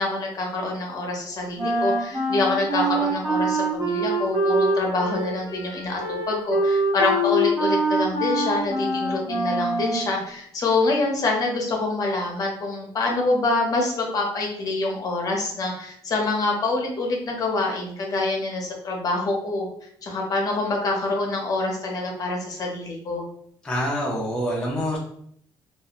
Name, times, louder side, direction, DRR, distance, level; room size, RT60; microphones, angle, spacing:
voice 1, 0.0-6.0 6.3-19.7 20.0-23.2, left 2 dB, 40° left, 0 dB, 0.7 m, -26 dB
Wind instrument woodwind instrument, 1.6-10.2, right 1 dB, 55° right, 1.3 m, -24 dB
voice 2, 23.6-25.0, equal, 10° left, -3 dB, 0.4 m, -26 dB
2.4 x 2.1 x 2.8 m, 0.66 s
cardioid pair, 135°, 9 cm